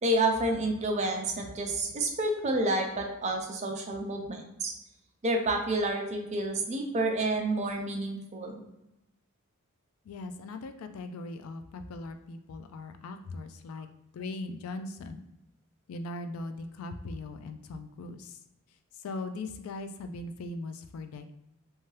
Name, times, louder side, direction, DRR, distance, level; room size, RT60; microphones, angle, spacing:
voice 1, 0.0-4.7 5.2-8.6, right 1 dB, 35° right, 2 dB, 0.5 m, -29 dB
voice 2, 10.1-13.9 14.1-15.2 15.9-18.4 19.0-21.3, left 2 dB, 85° left, 8 dB, 0.3 m, -39 dB
2.7 x 2.3 x 3.2 m, 0.90 s
head